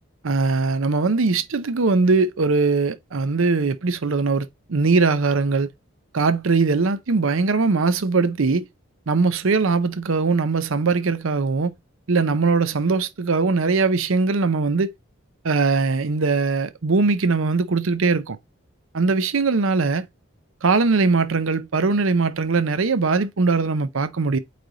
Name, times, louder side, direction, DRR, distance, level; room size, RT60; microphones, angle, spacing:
voice 1, 0.2-5.7 6.1-8.7 9.1-11.7 12.1-14.9 15.4-18.4 18.9-20.1 20.6-24.4, right 4 dB, 70° right, 0.6 m, -21 dB
8.5 x 3.3 x 3.9 m
head